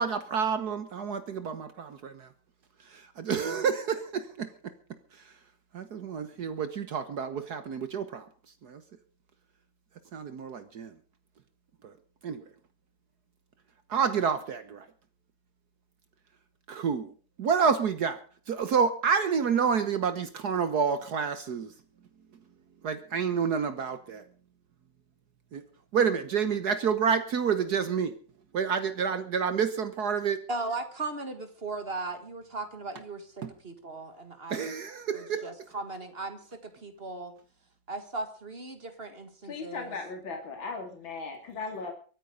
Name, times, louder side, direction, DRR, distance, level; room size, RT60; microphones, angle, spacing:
voice 1, 0.0-2.3 2.8-4.7 5.1-5.4 5.7-8.3 8.6-8.8 10.1-11.0 11.8-11.9 12.2-12.4 13.9-14.9 16.7-17.1 17.4-18.2 18.5-21.7 22.8-24.3 25.5-25.6 25.9-28.1 28.5-30.4 33.4-33.5 34.5-35.5, right 6 dB, 60° right, 11 dB, 1.5 m, -29 dB
voice 2, 30.5-33.3 33.6-34.6 35.1-37.3 37.9-39.8, right 3 dB, 30° right, 8 dB, 1.9 m, -37 dB
voice 3, 39.4-41.9, left 4 dB, 80° left, 3 dB, 3.4 m, -37 dB
23.0 x 9.2 x 5.1 m, 0.40 s
omnidirectional pair, 2.1 m